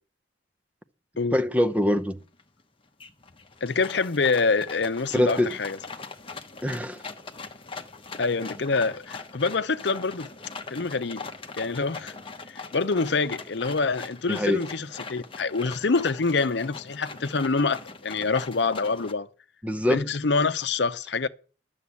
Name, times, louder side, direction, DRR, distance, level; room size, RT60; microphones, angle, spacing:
voice 1, 1.3-2.2 5.1-5.5 6.6-7.0 14.3-14.6 19.6-20.0, left 1 dB, 5° right, 0.7 m, -23 dB
sound 1, 1.8-1.9 2.2-2.6 3.0-19.1, left 4 dB, 30° left, 1.0 m, -41 dB
voice 2, 3.6-5.8 8.2-10.3 10.7-11.2 11.5-12.1 12.5-19.3 19.9-21.3, left 4 dB, 65° left, 0.7 m, -26 dB
11.5 x 7.2 x 8.4 m
head